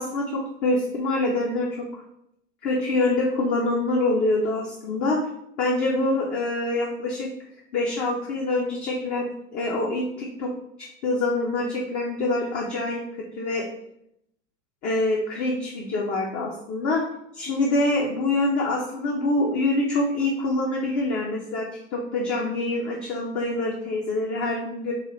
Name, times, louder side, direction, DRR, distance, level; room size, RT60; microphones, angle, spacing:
voice 1, 0.0-1.7 2.6-5.2 5.6-7.3 7.7-10.5 10.8-13.7 14.8-17.1 17.3-24.9, left 2 dB, 25° left, -1 dB, 0.4 m, -25 dB
4.2 x 2.3 x 2.8 m, 0.77 s
figure-of-eight pair, 90°, 38 cm